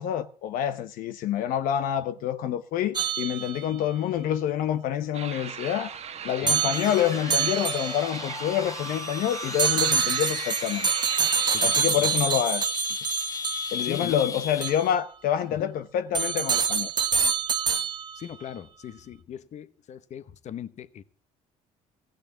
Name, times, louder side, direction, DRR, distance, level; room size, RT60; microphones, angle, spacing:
voice 1, 0.0-5.9 6.2-10.9 11.2-11.3 11.6-12.6 13.7-16.9, left 10 dB, 75° left, 0.9 m, -27 dB
sound 1, 3.0-3.9 6.5-8.2 9.6-13.9 14.6-14.8 16.2-18.3, right 6 dB, 30° right, 1.3 m, -26 dB
sound 2, 5.1-11.8, right 8 dB, 50° right, 1.2 m, -39 dB
sound 3, 6.7-14.9, left 5 dB, 25° left, 0.6 m, -35 dB
voice 2, 13.8-14.2 15.5-15.7 18.1-21.0, left 9 dB, 55° left, 1.1 m, -39 dB
16.0 x 6.6 x 9.2 m
cardioid pair, 100°, 15 cm